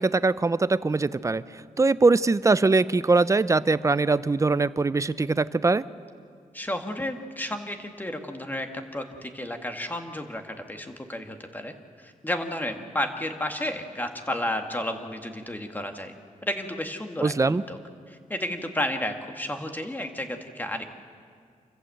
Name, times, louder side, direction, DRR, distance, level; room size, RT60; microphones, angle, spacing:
voice 1, 0.0-1.4 1.8-5.8 17.2-17.6, right 3 dB, 25° right, 16 dB, 0.6 m, -22 dB
voice 2, 6.5-16.1 16.4-17.8 18.1-20.8, left 1 dB, 15° left, 5 dB, 1.9 m, -32 dB
26.0 x 15.0 x 7.9 m, 2.2 s
cardioid pair, 95°, 13 cm